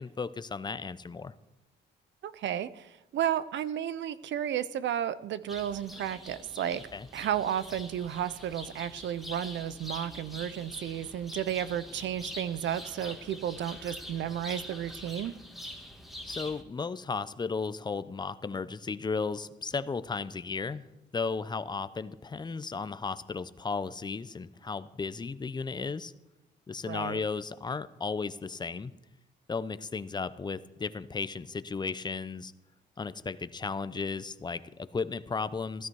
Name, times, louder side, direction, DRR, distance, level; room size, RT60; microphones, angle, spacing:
voice 1, 0.0-1.3 6.9-7.1 16.3-20.9 21.1-26.1 26.7-28.9 29.5-32.5 33.0-35.9, left 4 dB, 20° left, 15 dB, 0.6 m, -35 dB
voice 2, 2.2-6.8 7.1-15.3 26.9-27.2, right 10 dB, 70° right, 16 dB, 0.7 m, -33 dB
sound 1, 5.5-16.6, left 1 dB, ahead, 1.7 m, -44 dB
14.5 x 12.5 x 4.7 m, 0.96 s
cardioid pair, 90°, 20 cm